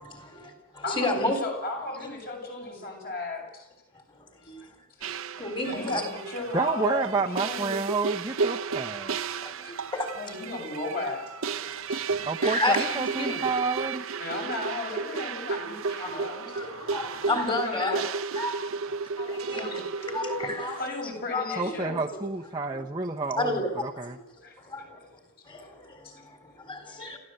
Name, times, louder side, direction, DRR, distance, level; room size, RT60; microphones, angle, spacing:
voice 1, 0.0-1.4 4.1-4.7 5.0-6.0 9.4-10.2 11.6-13.6 16.0-18.0 18.4-18.8 19.2-20.8 21.3-22.2 22.7-22.8 23.4-25.1 25.5-27.2, left 2 dB, 20° left, 5 dB, 3.9 m, -32 dB
voice 2, 0.8-3.7 5.6-7.8 9.3-9.7 10.1-11.3 11.9-12.2 14.2-16.6 17.6-18.0 19.5-19.8 20.8-22.0 24.4-24.5 26.0-26.1, left 2 dB, 45° left, 1 dB, 7.3 m, -35 dB
sound 1, 5.0-20.9, right 5 dB, 60° right, 0.8 m, -33 dB
voice 3, 6.5-9.2 12.3-14.0 21.6-24.2, right 3 dB, 20° right, 0 dB, 0.9 m, -29 dB
29.0 x 14.5 x 7.9 m, 0.94 s
head